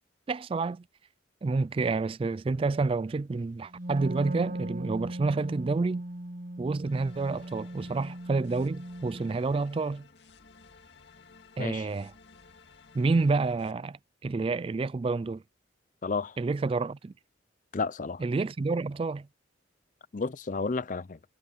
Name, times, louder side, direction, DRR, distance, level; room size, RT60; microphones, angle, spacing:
voice 1, 0.3-0.8 1.4-6.0 6.6-10.1 11.6-12.1 12.9-15.4 16.4-17.1 18.2-19.3, right 3 dB, 30° right, 0.3 m, -29 dB
Wind instrument woodwind instrument, 3.7-9.4, right 1 dB, 45° right, 0.9 m, -38 dB
sound 1, 6.9-13.7, left 4 dB, 65° left, 2.3 m, -56 dB
voice 2, 16.0-16.4 17.7-18.2 20.1-21.2, left 4 dB, 45° left, 0.5 m, -32 dB
head